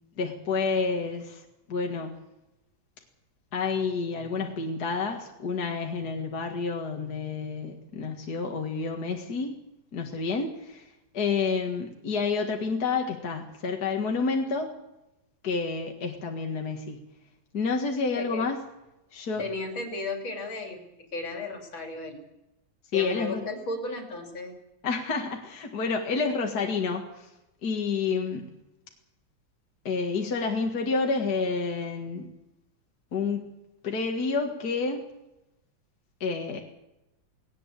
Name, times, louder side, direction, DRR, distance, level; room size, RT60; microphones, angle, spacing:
voice 1, 0.2-2.1 3.5-9.6 9.9-14.7 15.4-17.0 17.5-18.6 19.1-19.5 22.9-23.5 24.8-27.3 27.6-28.4 29.8-32.3 33.1-33.5 33.8-35.1 36.2-36.6, left 4 dB, 50° left, 2 dB, 2.3 m, -29 dB
voice 2, 18.1-18.5 19.4-20.8 21.1-22.2 22.9-24.5, left 2 dB, 75° left, 4 dB, 3.7 m, -34 dB
19.0 x 18.0 x 8.4 m, 0.92 s
omnidirectional pair, 2.2 m